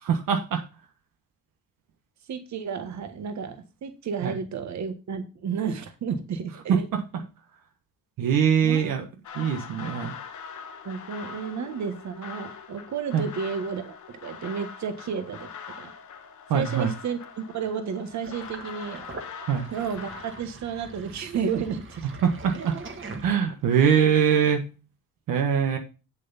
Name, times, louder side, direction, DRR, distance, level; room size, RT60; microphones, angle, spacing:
voice 1, 0.0-0.6 4.2-4.3 6.7-7.2 8.2-9.0 9.3-10.1 13.1-13.3 16.5-16.9 19.5-19.6 22.2-22.8 23.2-24.6 25.3-25.8, right 7 dB, 70° right, 5 dB, 1.3 m, -23 dB
voice 2, 2.3-6.9 8.6-8.9 10.8-14.0 14.2-15.5 15.8-15.9 16.5-19.1 19.7-22.1 22.5-22.7, right 6 dB, 55° right, 8 dB, 1.5 m, -32 dB
sound 1, 9.2-20.4, left 6 dB, 55° left, 1.5 m, -42 dB
Sink (filling or washing), 18.2-23.8, right 3 dB, 35° right, 1.9 m, -42 dB
8.1 x 7.4 x 4.1 m, 0.31 s
cardioid pair, 125°, 35 cm